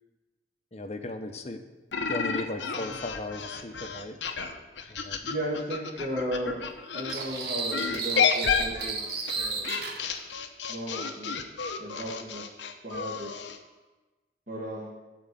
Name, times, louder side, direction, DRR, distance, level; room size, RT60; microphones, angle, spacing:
voice 1, 0.7-1.6 2.1-4.2 4.9-5.2, left 1 dB, 35° left, 7 dB, 0.8 m, -36 dB
sound 1, 1.9-7.2 7.7-13.6, left 6 dB, 85° left, 0.9 m, -31 dB
voice 2, 5.2-6.6 6.9-9.7 10.7-11.3 11.8-12.6 12.8-13.3 14.5-14.9, equal, 45° right, -6 dB, 2.0 m, -35 dB
sound 2, 7.1-10.0, right 4 dB, 65° right, 1.6 m, -33 dB
11.5 x 4.6 x 7.6 m, 1.2 s
head